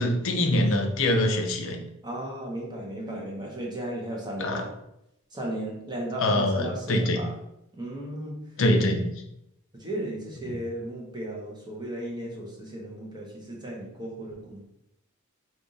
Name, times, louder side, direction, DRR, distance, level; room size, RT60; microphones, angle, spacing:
voice 1, 0.0-1.8 4.4-4.6 6.2-7.2 8.6-9.1, left 1 dB, 60° left, 4 dB, 0.6 m, -24 dB
voice 2, 2.0-4.7 5.3-7.3 7.7-8.4 8.8-8.9 9.7-14.6, right 1 dB, 20° right, -2 dB, 0.8 m, -35 dB
3.5 x 2.4 x 3.9 m, 0.81 s
head